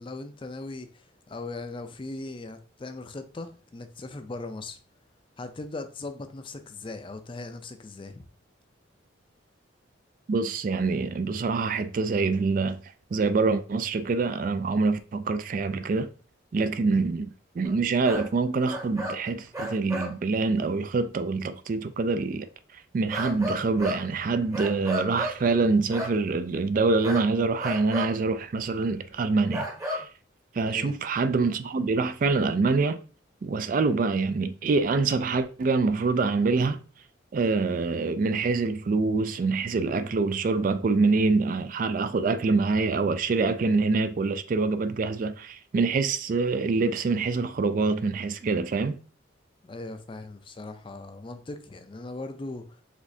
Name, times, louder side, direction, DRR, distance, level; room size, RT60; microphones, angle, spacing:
voice 1, 0.0-4.8 5.4-8.3 30.7-30.9 49.6-52.8, left 2 dB, 25° left, 0.4 m, -39 dB
voice 2, 10.3-12.8 13.1-16.1 16.5-17.3 17.6-22.5 22.7-30.1 30.5-33.0 33.4-36.8 37.3-49.0, right 4 dB, 45° right, 0.3 m, -25 dB
sound 1, 17.6-17.8 18.0-18.3 18.6-19.2 19.5-20.2 23.1-24.0 24.5-25.4 25.9-26.2 27.0-27.3 27.6-28.1 28.6-28.7 29.5-30.1, equal, 15° right, 0.9 m, -33 dB
5.0 x 3.4 x 2.7 m
head